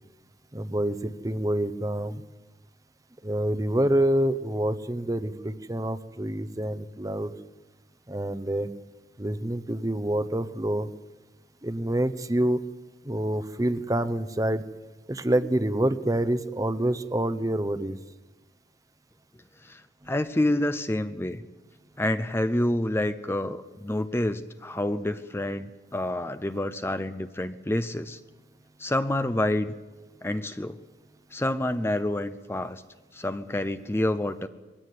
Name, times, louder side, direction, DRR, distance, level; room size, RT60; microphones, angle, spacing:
voice 1, 0.5-2.2 3.2-7.3 8.1-8.7 9.2-10.9 11.6-12.6 13.0-14.6 15.1-18.0, right 1 dB, 20° right, 13 dB, 0.9 m, -27 dB
voice 2, 19.6-21.4 22.0-28.2 28.8-29.7 30.2-30.8 31.3-32.8 33.1-34.5, left 1 dB, 15° left, 10 dB, 0.6 m, -28 dB
21.5 x 16.0 x 9.4 m, 1.2 s
head